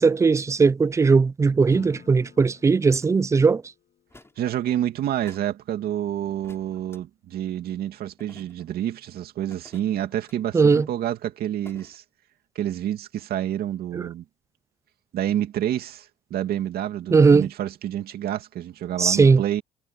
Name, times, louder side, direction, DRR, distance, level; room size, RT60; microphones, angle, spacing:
voice 1, 0.0-3.6 10.5-10.9 13.9-14.0 17.1-17.5 19.0-19.4, right 4 dB, 15° right, 0.4 m, -18 dB
Acoustic guitar / Strum, 1.7-4.9, left 10 dB, 55° left, 6.6 m, -50 dB
sound 1, 3.0-3.1 4.1-4.4 5.2-5.5 6.4-7.0 8.2-8.7 9.5-10.4 11.6-12.0, left 2 dB, 15° left, 6.8 m, -51 dB
voice 2, 4.4-12.0 12.6-14.2 15.1-19.6, right 11 dB, 65° right, 2.5 m, -28 dB
cardioid pair, 110°, 17 cm